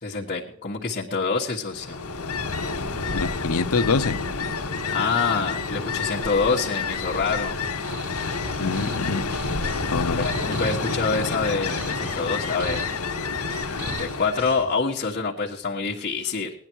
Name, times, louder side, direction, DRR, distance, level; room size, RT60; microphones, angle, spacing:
voice 1, 0.0-2.0 4.9-7.6 10.2-12.8 13.8-16.5, left 4 dB, 40° left, -4 dB, 1.4 m, -26 dB
Ocean, 1.7-14.5, left 4 dB, 90° left, 1.5 m, -29 dB
voice 2, 3.1-4.2 8.6-9.2 9.9-10.3, left 4 dB, 75° left, 10 dB, 0.8 m, -25 dB
sound 1, 6.5-14.8, right 1 dB, 75° right, 4.3 m, -38 dB
18.0 x 10.5 x 4.6 m, 0.71 s
head